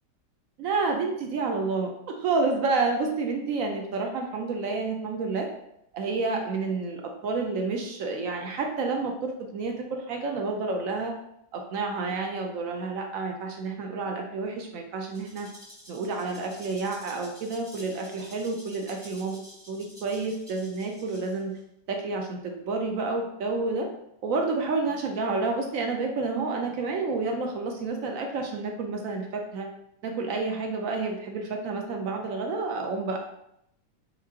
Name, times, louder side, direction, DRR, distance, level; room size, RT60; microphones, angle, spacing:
voice 1, 0.6-1.9 2.2-5.5 5.9-11.2 11.5-15.5 15.9-19.4 19.7-21.6 21.9-23.9 24.2-29.7 30.0-33.2, right 3 dB, 70° right, 3 dB, 0.8 m, -29 dB
Rattle (instrument), 15.1-21.6, equal, 5° right, 0.9 m, -50 dB
4.9 x 3.5 x 2.8 m, 0.78 s
omnidirectional pair, 1.9 m